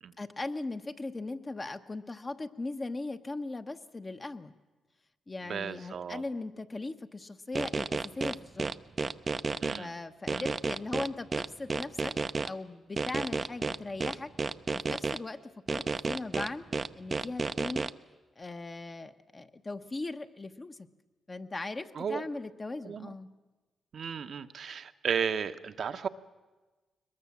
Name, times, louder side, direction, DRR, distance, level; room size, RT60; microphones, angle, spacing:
voice 1, 0.2-4.5 5.3-8.7 9.8-12.1 12.5-14.3 14.7-15.4 15.7-16.7 16.9-17.9 18.4-20.9 21.3-23.3, left 2 dB, 30° left, 7 dB, 1.1 m, -39 dB
voice 2, 5.4-6.2 9.6-9.9 10.3-10.4 21.9-22.2 22.8-23.1 23.9-26.1, right 7 dB, 65° right, 9 dB, 1.0 m, -34 dB
sound 1, 7.6-9.8 10.3-12.5 13.0-15.2 15.7-17.9, right 4 dB, 40° right, 0.6 m, -31 dB
22.0 x 21.0 x 7.3 m, 1.2 s
supercardioid pair, 60°, 0 cm